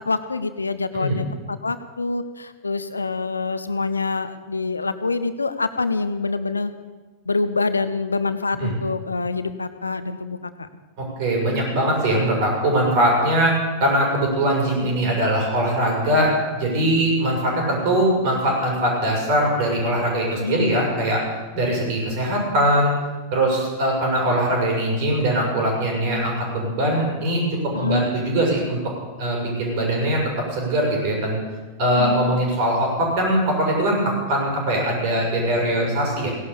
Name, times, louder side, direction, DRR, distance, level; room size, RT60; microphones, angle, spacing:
voice 1, 0.1-6.7 7.3-10.5 20.4-20.8 27.7-28.1 32.0-32.6, left 3 dB, 80° left, 12 dB, 0.9 m, -26 dB
voice 2, 11.0-13.5 13.8-21.2 21.5-22.9 23.3-28.8 29.2-30.2 30.5-31.4 31.8-36.3, right 1 dB, 50° right, -1 dB, 6.4 m, -21 dB
17.0 x 11.5 x 7.0 m, 1.3 s
figure-of-eight pair, 90°, 0 cm